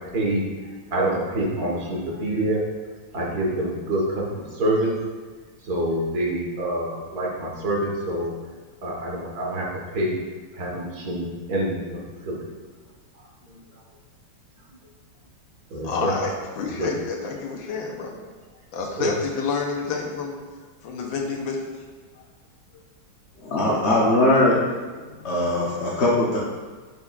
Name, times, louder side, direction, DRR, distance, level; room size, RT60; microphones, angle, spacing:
voice 1, 0.9-2.6 3.1-4.9 5.7-8.3 8.8-9.7 9.9-10.2 10.5-12.0 12.2-12.4 15.7-16.1 16.7-16.9 19.0-19.1, right 1 dB, 50° right, -3 dB, 1.9 m, -26 dB
voice 2, 15.8-18.2 18.7-20.4 20.8-21.7 22.2-22.3, left 4 dB, 80° left, 0 dB, 1.6 m, -29 dB
voice 3, 23.4-24.8 25.2-26.4, left 1 dB, 45° left, -5 dB, 0.9 m, -20 dB
11.0 x 5.3 x 2.4 m, 1.4 s
omnidirectional pair, 2.2 m